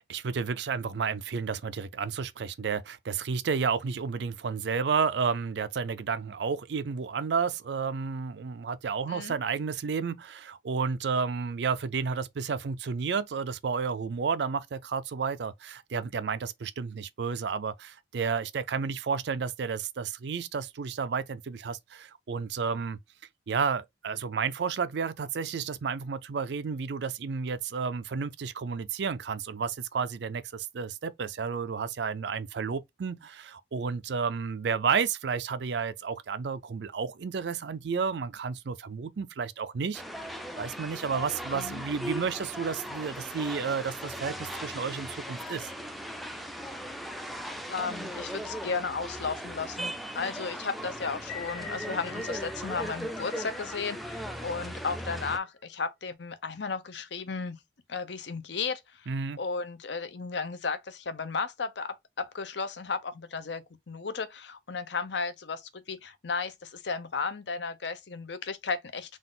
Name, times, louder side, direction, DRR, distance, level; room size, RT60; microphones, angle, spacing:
voice 1, 0.1-23.0 23.5-45.7 59.1-59.4, right 5 dB, 60° right, 0.4 m, -31 dB
sound 1, 39.9-55.4, equal, ahead, 0.4 m, -38 dB
voice 2, 41.5-41.8 47.7-57.6 57.9-59.1 59.4-69.2, left 4 dB, 65° left, 0.7 m, -34 dB
sound 2, 51.2-55.5, left 3 dB, 40° left, 1.3 m, -45 dB
3.9 x 2.4 x 3.7 m
head